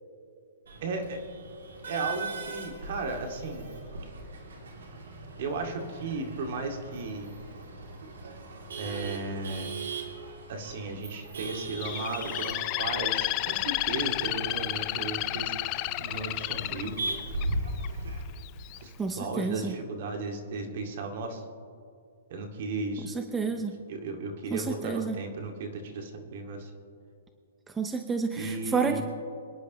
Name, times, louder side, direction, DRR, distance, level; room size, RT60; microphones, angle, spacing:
Male speech man speaking / Laughter / Chatter, 0.7-18.2, right 2 dB, 85° right, 2.8 m, -39 dB
voice 1, 0.8-1.2 1.8-3.7 5.4-7.3 8.8-9.7 10.5-15.5 16.0-17.0 18.8-21.4 22.3-23.1 23.5-23.6 23.9-26.7 28.3-29.0, right 3 dB, 50° right, 3 dB, 2.2 m, -35 dB
Bird, 11.8-17.9 18.4-18.8, left 18 dB, 30° left, 0.4 m, -31 dB
voice 2, 19.0-19.7 23.0-23.7 24.5-25.2 27.8-29.0, right 5 dB, 10° right, 6 dB, 0.7 m, -30 dB
26.5 x 10.5 x 3.1 m, 2.4 s
hypercardioid pair, 155°, 0 cm